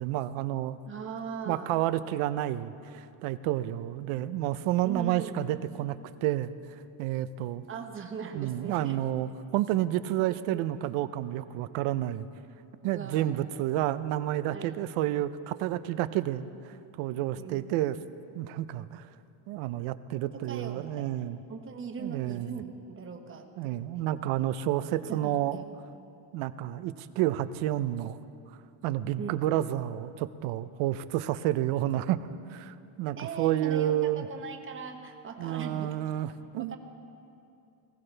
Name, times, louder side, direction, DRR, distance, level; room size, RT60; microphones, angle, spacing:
voice 1, 0.0-0.8 1.5-7.7 8.3-12.3 12.8-18.0 18.3-19.1 19.5-21.4 22.0-22.6 23.6-25.6 26.3-28.2 28.8-34.3 35.4-36.8, right 13 dB, 80° right, 14 dB, 0.7 m, -30 dB
voice 2, 0.9-1.8 4.8-5.3 7.7-9.0 10.3-10.7 12.8-13.3 14.5-14.7 17.4-17.7 20.2-23.8 25.1-25.7 29.2-29.3 33.2-35.9 36.6-36.8, right 6 dB, 25° right, 4 dB, 1.2 m, -40 dB
20.0 x 15.5 x 3.4 m, 2.6 s
cardioid pair, 145°, 48 cm